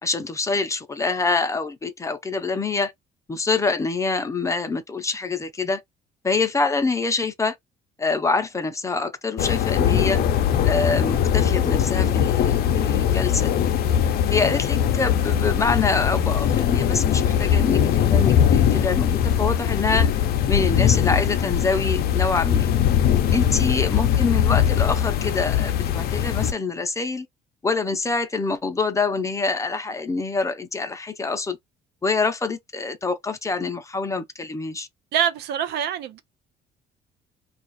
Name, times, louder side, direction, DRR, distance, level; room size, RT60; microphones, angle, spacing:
voice 1, 0.0-2.9 3.3-5.8 6.2-7.6 8.0-10.2 10.6-13.5 14.3-22.7 23.3-27.3 27.6-31.6 32.0-34.9, left 4 dB, 20° left, 0.6 m, -25 dB
sound 1, 9.4-26.5, left 9 dB, 65° left, 0.5 m, -21 dB
voice 2, 23.3-23.6 35.1-36.2, right 9 dB, 75° right, 0.6 m, -26 dB
2.4 x 2.4 x 4.0 m
cardioid pair, 110°, 17 cm